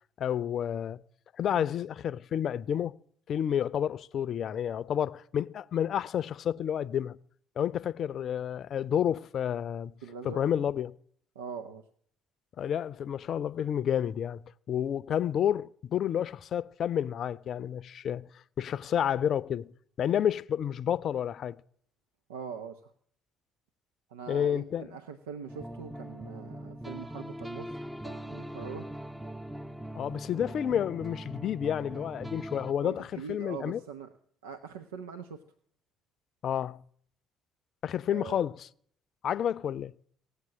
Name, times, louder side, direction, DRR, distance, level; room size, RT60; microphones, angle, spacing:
voice 1, 0.2-1.0 1.4-2.9 3.3-7.2 7.6-9.9 10.2-10.9 12.6-18.3 18.6-19.7 20.0-21.6 24.3-24.9 29.9-33.8 36.4-36.8 37.8-38.7 39.2-39.9, left 9 dB, 55° left, 0.6 m, -30 dB
voice 2, 10.0-10.4 11.3-11.8 22.3-22.9 24.1-27.8 28.0-28.9 32.8-34.1 34.4-35.4 38.1-38.4, right 6 dB, 85° right, 0.8 m, -42 dB
sound 1, 25.5-32.7, right 1 dB, 5° right, 0.8 m, -41 dB
17.5 x 8.2 x 9.8 m
hypercardioid pair, 50°, 0 cm